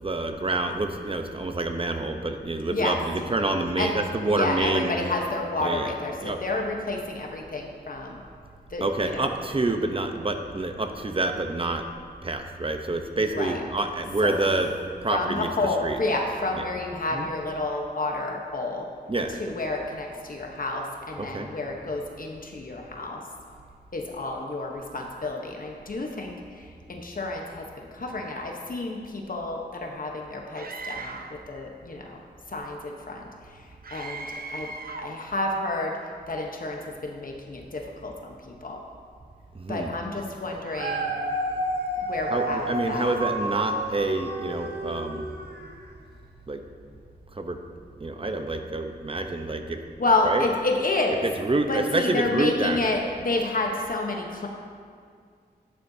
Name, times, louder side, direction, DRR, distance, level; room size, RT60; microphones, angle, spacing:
voice 1, 0.0-5.0 5.6-5.9 6.2-6.4 8.8-11.8 12.2-14.8 15.0-16.0 16.5-16.7 17.1-17.3 19.1-19.4 21.2-21.5 39.5-39.9 42.3-45.3 46.5-46.6 47.3-47.6 48.0-49.8 50.2-50.5 51.2-52.9, right 2 dB, 30° right, 5 dB, 0.8 m, -27 dB
voice 2, 4.3-8.2 8.7-9.3 13.3-13.6 14.2-14.3 15.1-18.9 19.4-23.2 23.9-32.2 32.5-34.7 35.0-35.9 36.3-38.8 39.7-41.1 42.1-43.1 50.0-51.2 51.7-54.5, left 2 dB, 55° left, 1 dB, 1.0 m, -30 dB
Screaming, 30.5-31.4 33.8-35.2, right 3 dB, 60° right, 0.7 m, -38 dB
Dog, 40.5-45.9 46.4-46.5, right 1 dB, 75° right, 1.1 m, -31 dB
13.0 x 9.9 x 2.8 m, 2.1 s
wide cardioid pair, 80°, 17 cm